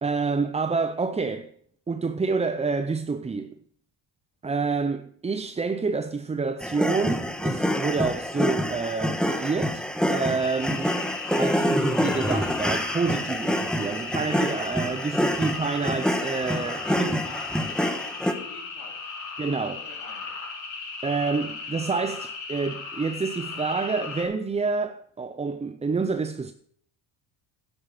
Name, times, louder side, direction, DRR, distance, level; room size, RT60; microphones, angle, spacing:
voice 1, 0.0-1.5 1.9-3.5 4.4-11.0 11.4-17.2 19.4-19.8 21.0-26.5, right 4 dB, 15° right, 0.4 m, -28 dB
sound 1, 6.6-18.3, equal, ahead, 1.3 m, -27 dB
sound 2, 10.4-24.2, left 4 dB, 45° left, 5.1 m, -37 dB
voice 2, 16.5-18.0 18.3-19.0 19.4-20.4, left 4 dB, 90° left, 2.9 m, -45 dB
10.0 x 8.8 x 5.9 m
cardioid pair, 90°, 49 cm